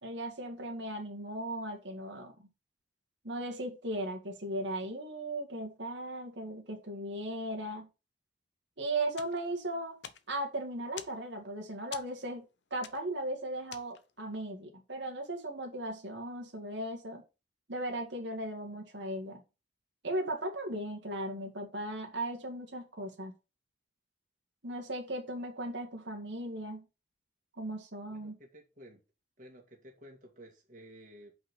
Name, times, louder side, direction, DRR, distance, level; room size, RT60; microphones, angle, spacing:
voice 1, 0.0-2.5 3.2-7.9 8.8-10.0 10.3-12.5 12.7-17.2 17.7-19.4 20.0-23.3 24.6-26.9 27.6-28.4, right 1 dB, 70° right, 2.0 m, -37 dB
sound 1, 9.1-14.3, left 9 dB, 65° left, 0.8 m, -50 dB
voice 2, 28.1-29.0 29.4-31.3, equal, 40° right, 2.2 m, -53 dB
5.7 x 5.4 x 6.4 m
head